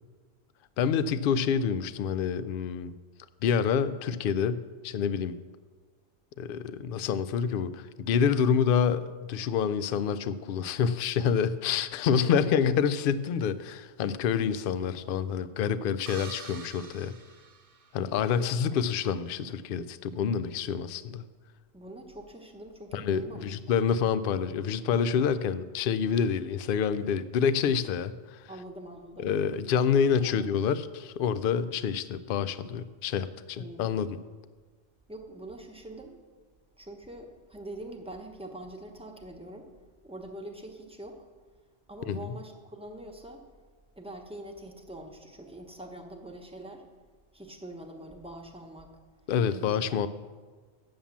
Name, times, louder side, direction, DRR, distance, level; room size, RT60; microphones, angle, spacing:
voice 1, 0.8-3.0 3.4-5.4 6.4-17.1 17.9-21.2 22.9-28.5 29.2-34.2 42.1-42.3 49.3-50.1, left 7 dB, 60° left, 14 dB, 0.6 m, -27 dB
voice 2, 12.2-12.7 18.2-18.7 21.7-23.8 28.5-29.3 29.9-30.5 33.6-33.9 35.1-36.2 36.8-39.7 40.0-41.2 41.9-43.4 44.0-46.8 47.3-49.0 49.5-50.1, right 1 dB, 5° right, 1 dB, 0.9 m, -44 dB
sound 1, 16.1-18.3, right 5 dB, 40° right, 0.5 m, -46 dB
8.7 x 7.1 x 7.3 m, 1.4 s
omnidirectional pair, 1.3 m